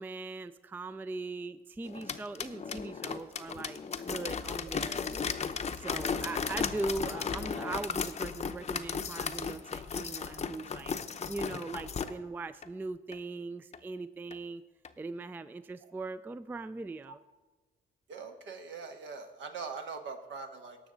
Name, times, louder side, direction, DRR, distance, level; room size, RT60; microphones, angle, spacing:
voice 1, 0.0-5.0 5.8-11.0 11.3-14.6 15.0-17.2, right 3 dB, 10° right, 14 dB, 0.3 m, -40 dB
sound 1, 1.8-12.1 12.6-12.7 13.1-13.2 13.7-13.8 14.3-14.4 14.8-14.9, left 6 dB, 35° left, 0.6 m, -35 dB
voice 2, 18.1-20.8, right 5 dB, 70° right, 5 dB, 1.4 m, -42 dB
17.5 x 6.1 x 3.9 m, 1.2 s
cardioid pair, 90°, 20 cm